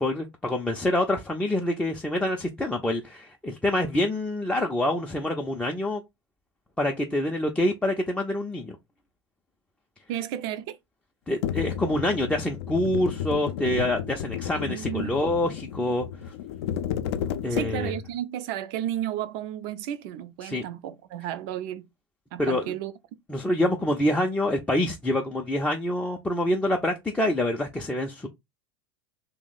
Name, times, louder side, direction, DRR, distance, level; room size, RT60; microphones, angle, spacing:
voice 1, 0.0-6.0 6.8-8.8 11.3-16.1 17.4-18.0 20.4-20.6 22.4-22.7 23.3-28.3, left 1 dB, 5° left, 0.4 m, -26 dB
voice 2, 10.1-10.8 14.5-15.2 17.5-21.8 22.3-22.9, right 11 dB, 50° right, 0.4 m, -33 dB
sound 1, 11.4-18.1, left 9 dB, 60° left, 0.4 m, -32 dB
2.8 x 2.1 x 3.9 m
hypercardioid pair, 85°, 15 cm